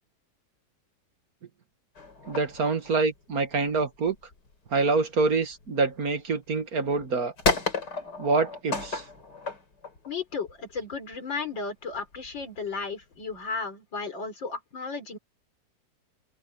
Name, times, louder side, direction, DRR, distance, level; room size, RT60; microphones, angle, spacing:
sound 1, 2.0-6.2 6.7-11.2 11.9-13.4, left 3 dB, 65° left, 4.1 m, -33 dB
voice 1, 2.3-4.2 4.7-7.3 8.2-9.0, right 4 dB, 55° right, 2.1 m, -26 dB
voice 2, 10.1-15.2, left 4 dB, 85° left, 4.9 m, -34 dB
open air
omnidirectional pair, 2.0 m